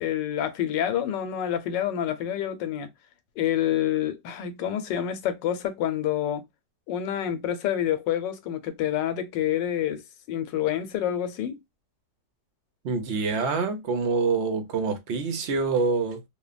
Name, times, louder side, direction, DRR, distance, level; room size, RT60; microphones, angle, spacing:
voice 1, 0.0-2.9 3.4-6.5 6.9-10.0 10.3-11.6, left 10 dB, 85° left, 1.3 m, -27 dB
voice 2, 12.8-16.2, right 4 dB, 60° right, 0.7 m, -26 dB
3.0 x 2.2 x 2.3 m
omnidirectional pair, 1.9 m